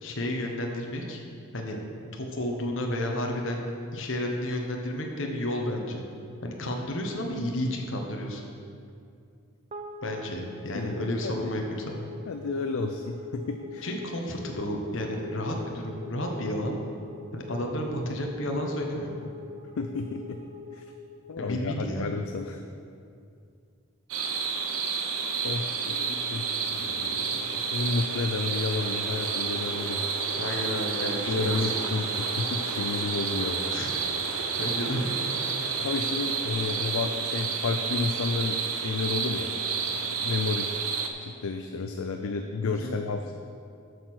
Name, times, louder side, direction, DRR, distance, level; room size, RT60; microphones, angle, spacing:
voice 1, 0.0-1.2 1.5-1.8 2.1-3.6 3.9-6.1 6.4-8.4 10.0-12.1 13.8-16.7 17.3-19.3 21.4-22.1 30.4-31.5 33.7-33.9 34.6-35.1 42.6-43.0, left 1 dB, 60° left, 1 dB, 1.1 m, -31 dB
sound 1, 9.7-22.2, left 3 dB, 30° right, 0.5 m, -45 dB
voice 2, 11.2-11.5 12.3-13.9 19.8-20.4 20.7-20.8 21.3-22.6 25.4-30.0 31.0-33.6 35.8-39.5 39.8-40.7 41.2-43.3, left 4 dB, 80° left, 5 dB, 0.5 m, -31 dB
sound 2, 24.1-41.1, right 5 dB, 85° right, 0.8 m, -30 dB
7.9 x 6.5 x 6.2 m, 2.5 s
head